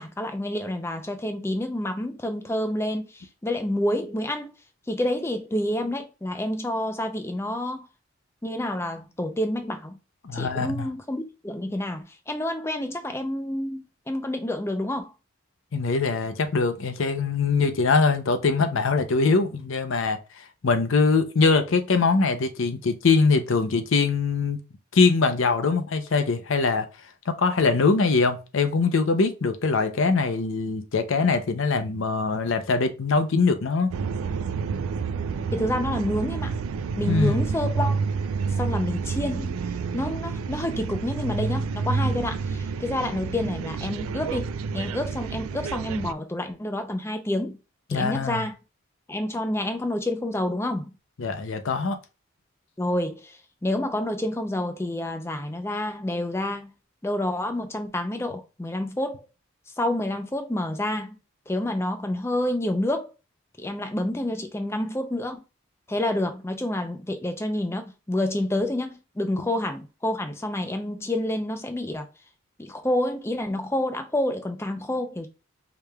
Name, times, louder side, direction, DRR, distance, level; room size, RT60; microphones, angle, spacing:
voice 1, 0.0-4.5 4.9-7.9 8.4-10.0 10.3-15.1 35.5-36.5 37.0-38.0 38.5-39.6 39.9-47.6 47.9-48.5 49.1-50.9 52.8-56.7 57.0-59.3 59.8-61.2 61.5-63.1 63.6-65.4 65.9-72.1 72.6-75.3, left 1 dB, 10° left, 0.4 m, -28 dB
voice 2, 10.2-10.9 15.7-24.6 24.9-26.9 27.3-33.9 37.1-37.4 47.9-48.4 51.2-52.0, left 4 dB, 70° left, 0.6 m, -22 dB
sound 1, 33.9-46.1, right 5 dB, 90° right, 0.4 m, -29 dB
4.8 x 3.3 x 2.2 m
head